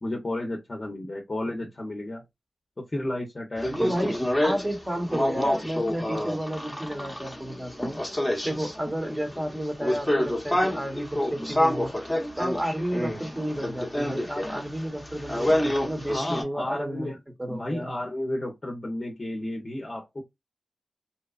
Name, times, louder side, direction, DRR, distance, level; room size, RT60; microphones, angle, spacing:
voice 1, 0.0-2.2 2.9-4.3 16.0-17.1 17.5-20.2, left 1 dB, 40° left, 0.7 m, -32 dB
sound 1, 3.6-16.4, left 1 dB, 10° left, 0.8 m, -28 dB
voice 2, 3.8-8.0 8.4-11.9 12.4-17.9, equal, 15° right, 1.0 m, -32 dB
2.8 x 2.2 x 2.3 m
cardioid pair, 60°, 0 cm